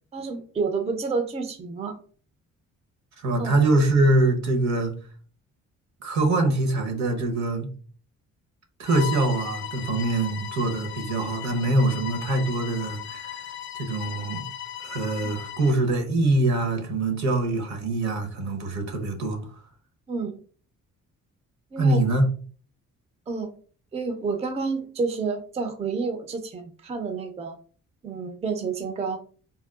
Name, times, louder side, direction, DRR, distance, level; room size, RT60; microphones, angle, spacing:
voice 1, 0.1-2.0 3.4-3.5 15.2-15.3 20.1-20.4 21.7-22.0 23.3-23.5 23.9-27.6 28.0-29.2, right 4 dB, 20° right, 0.4 m, -29 dB
voice 2, 3.2-4.9 6.0-7.7 8.8-13.4 13.7-14.5 14.8-19.4 21.8-22.2, right 2 dB, 65° right, 0.9 m, -24 dB
Bowed string instrument, 8.9-15.8, left 11 dB, 40° left, 0.4 m, -37 dB
3.5 x 2.3 x 2.3 m
cardioid pair, 90°, 30 cm